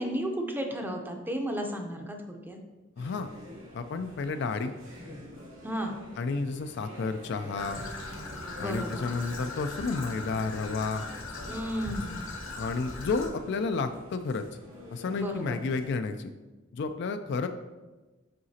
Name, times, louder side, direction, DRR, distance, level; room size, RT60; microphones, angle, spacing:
voice 1, 0.0-2.6 5.6-6.0 8.6-9.0 11.5-12.2 15.2-15.6, equal, 10° right, 3 dB, 0.6 m, -33 dB
voice 2, 3.0-3.3 3.7-4.7 6.2-7.8 8.6-11.0 12.6-14.4 14.9-16.3 16.7-17.5, left 4 dB, 60° left, 8 dB, 0.3 m, -31 dB
sound 1, 3.0-15.9, left 1 dB, 80° right, 2.1 m, -47 dB
Traffic noise roadway noise / Trickle dribble, 7.5-13.3, left 2 dB, 80° left, 1.0 m, -39 dB
7.7 x 4.8 x 2.8 m, 1.2 s
head